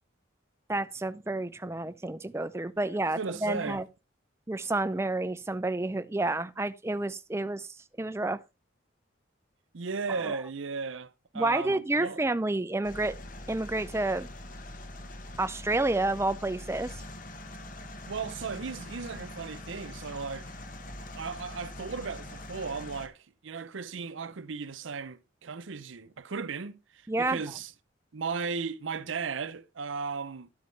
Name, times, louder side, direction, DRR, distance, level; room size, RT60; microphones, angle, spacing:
voice 1, 0.7-3.9 4.5-8.4 10.2-10.4 11.3-13.2 13.5-14.3 15.4-17.0 27.1-27.4, right 2 dB, 15° right, 0.4 m, -30 dB
voice 2, 3.2-3.8 9.7-12.2 18.1-20.5 21.2-27.7 28.1-30.5, right 5 dB, 75° right, 0.6 m, -36 dB
sound 1, 12.8-23.1, left 1 dB, 40° left, 1.1 m, -43 dB
11.5 x 8.3 x 3.3 m
head